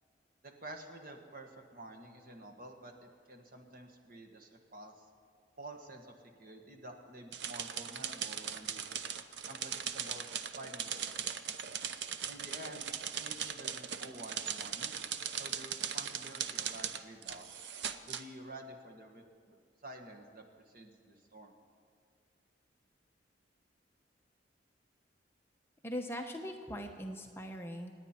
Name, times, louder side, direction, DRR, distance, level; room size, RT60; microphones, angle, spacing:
voice 1, 0.4-4.9 5.6-6.1 6.4-8.8 9.5-10.3 10.6-11.5 12.3-12.9 13.1-15.0 15.4-17.6 18.1-19.6 19.8-21.5, right 1 dB, 50° right, 4 dB, 1.5 m, -50 dB
sound 1, 7.3-18.2, right 8 dB, 70° right, 0.7 m, -39 dB
voice 2, 25.8-28.0, equal, 15° left, 3 dB, 0.8 m, -41 dB
27.5 x 9.5 x 4.4 m, 2.1 s
head